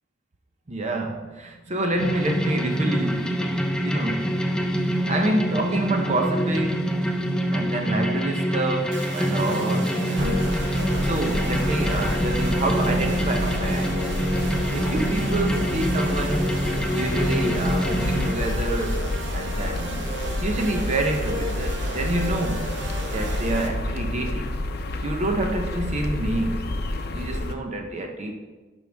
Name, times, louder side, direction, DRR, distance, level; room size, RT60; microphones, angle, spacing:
voice 1, 0.7-4.4 5.1-7.1 7.5-10.6 11.0-14.0 14.7-16.6 16.9-20.0 20.4-22.7 23.1-24.6 25.0-26.7 27.1-28.4, right 2 dB, 40° right, 3 dB, 0.8 m, -28 dB
sound 1, 2.0-18.3, equal, 5° left, 0.6 m, -25 dB
sound 2, 8.9-23.7, right 1 dB, 80° right, 1.0 m, -35 dB
sound 3, 10.2-27.6, left 1 dB, 60° left, 0.7 m, -29 dB
11.0 x 5.4 x 3.5 m, 1.3 s
head